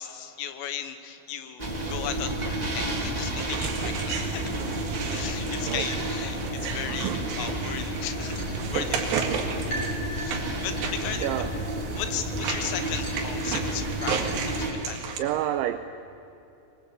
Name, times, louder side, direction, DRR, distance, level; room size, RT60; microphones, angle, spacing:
voice 1, 0.0-4.4 5.1-8.4 8.7-9.3 10.1-11.3 11.9-14.3 14.6-15.3, left 9 dB, 75° left, 9 dB, 3.7 m, -36 dB
sound 1, 1.6-14.7, right 1 dB, 45° right, 0.5 m, -31 dB
sound 2, 3.4-15.2, right 6 dB, 60° right, 3.8 m, -34 dB
sound 3, 5.5-15.2, right 1 dB, 25° left, 7.1 m, -44 dB
voice 2, 6.8-7.3 11.2-11.5 15.2-15.8, right 12 dB, 80° right, 9 dB, 2.7 m, -29 dB
22.5 x 22.5 x 8.4 m, 2.9 s
omnidirectional pair, 6.0 m